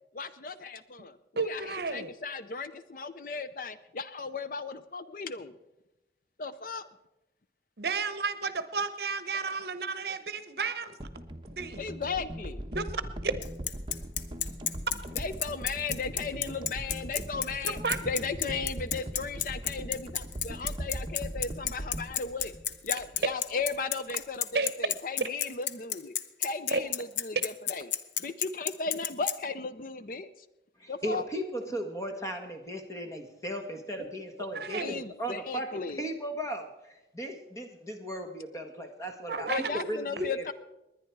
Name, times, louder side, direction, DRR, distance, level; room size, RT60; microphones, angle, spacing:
voice 1, 0.1-5.6 6.4-6.9 11.8-12.7 15.2-22.5 22.8-27.9 28.2-30.3 30.9-31.3 34.8-36.1 39.5-40.5, left 4 dB, 50° left, 14 dB, 0.5 m, -36 dB
voice 2, 1.4-2.1 7.8-11.0 11.5-11.8 12.7-13.3 17.6-18.0 24.5-24.7 26.7-26.8 34.5-35.0 39.3-39.8 40.2-40.3, right 4 dB, 60° right, 13 dB, 0.9 m, -32 dB
sound 1, 11.0-23.3 23.6-23.8, right 1 dB, 25° right, 1.0 m, -40 dB
Bicycle, 13.4-29.3, left 10 dB, 90° left, 0.8 m, -31 dB
voice 3, 30.8-35.7 36.0-36.7 37.1-40.5, right 1 dB, 15° left, 4 dB, 1.5 m, -36 dB
21.0 x 10.0 x 4.6 m, 0.96 s
head